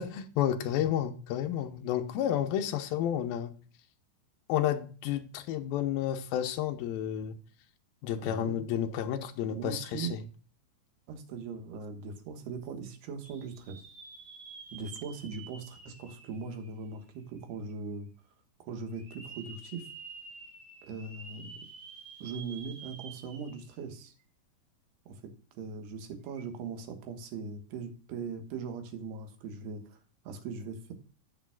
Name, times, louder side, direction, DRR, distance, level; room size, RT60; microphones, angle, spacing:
voice 1, 0.0-3.5 4.5-7.4 8.0-10.2, left 10 dB, 85° left, 2.1 m, -31 dB
voice 2, 8.1-8.6 9.5-10.2 11.1-13.8 14.7-18.1 18.6-19.9 20.9-21.5 22.2-24.1 25.1-30.0 30.2-30.8, right 5 dB, 70° right, 3.2 m, -40 dB
sound 1, 13.2-17.2 17.7-17.8 18.9-23.8 24.2-24.3 26.3-26.4, right 4 dB, 40° right, 1.7 m, -49 dB
16.0 x 6.9 x 2.3 m
omnidirectional pair, 5.2 m